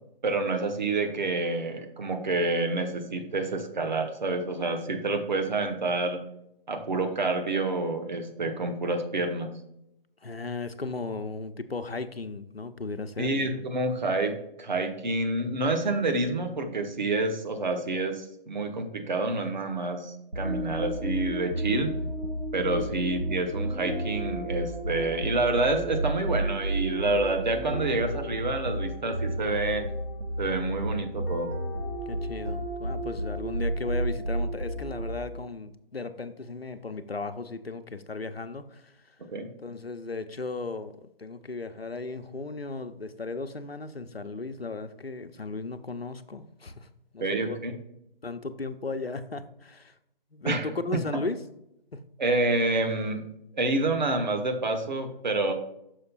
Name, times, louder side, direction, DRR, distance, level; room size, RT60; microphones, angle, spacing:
voice 1, 0.2-6.2 6.7-9.5 13.2-21.9 22.5-29.8 30.4-31.5 39.3-39.5 47.2-47.7 50.4-51.0 52.2-53.2 53.5-55.5, right 2 dB, 50° right, 5 dB, 1.1 m, -28 dB
voice 2, 10.2-13.3 22.8-22.9 32.1-38.9 39.6-40.9 41.2-46.9 47.1-47.6 48.2-49.9 50.3-51.4 51.9-52.0, left 3 dB, 90° left, 9 dB, 0.8 m, -36 dB
sound 1, 20.3-35.5, right 1 dB, 85° right, 1.2 m, -32 dB
6.6 x 5.1 x 4.0 m, 0.81 s
figure-of-eight pair, 150°, 29 cm